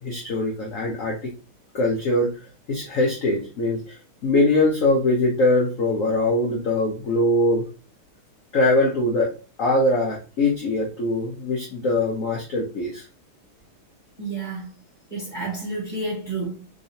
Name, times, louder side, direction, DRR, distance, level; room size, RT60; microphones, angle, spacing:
voice 1, 0.0-1.3 1.7-2.4 2.7-4.0 4.2-7.7 8.5-9.3 9.6-13.0, left 2 dB, 70° left, 0.7 m, -22 dB
voice 2, 14.2-14.7 15.1-16.7, right 3 dB, 30° right, 0.8 m, -30 dB
3.7 x 3.0 x 2.6 m
omnidirectional pair, 2.3 m